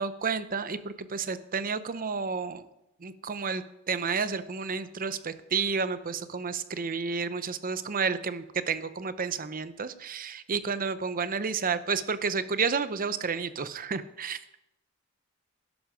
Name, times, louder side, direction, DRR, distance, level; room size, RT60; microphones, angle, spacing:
voice 1, 0.0-2.6 3.0-14.4, right 5 dB, 40° right, 13 dB, 0.7 m, -31 dB
12.5 x 11.5 x 5.0 m, 0.88 s
head